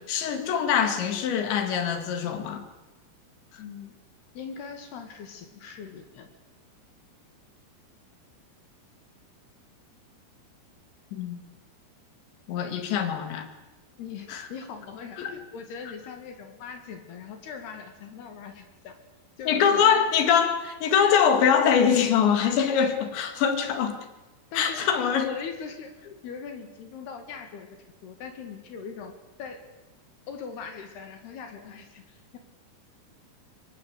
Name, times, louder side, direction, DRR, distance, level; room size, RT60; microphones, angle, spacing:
voice 1, 0.0-2.6 11.1-11.4 12.5-13.5 14.3-14.5 15.2-15.3 19.5-24.0 24.6-25.3, left 7 dB, 80° left, 8 dB, 4.6 m, -23 dB
voice 2, 3.6-4.0 4.3-6.3 14.0-19.0 19.4-20.1 24.5-24.9 25.2-25.9 26.2-29.1 29.4-29.7 30.3-32.4, left 6 dB, 65° left, 7 dB, 3.9 m, -40 dB
25.5 x 22.0 x 8.3 m, 1.1 s
omnidirectional pair, 5.1 m